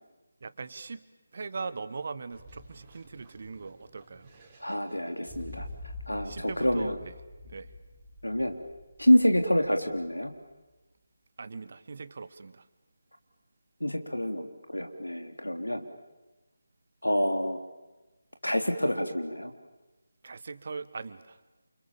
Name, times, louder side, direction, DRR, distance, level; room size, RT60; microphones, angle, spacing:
voice 1, 0.4-1.1 1.3-4.3 6.1-7.1 7.4-7.7 11.4-12.6 20.2-21.4, right 4 dB, 40° right, 14 dB, 1.3 m, -40 dB
sound 1, 2.3-10.3, left 2 dB, 20° right, 4.5 m, -47 dB
voice 2, 4.6-5.7 6.1-7.0 8.2-8.5 9.0-10.3 13.8-15.8 17.0-17.6 18.4-19.5, equal, 80° left, 5 dB, 3.6 m, -27 dB
28.5 x 28.5 x 7.2 m, 1.1 s
figure-of-eight pair, 155°, 0 cm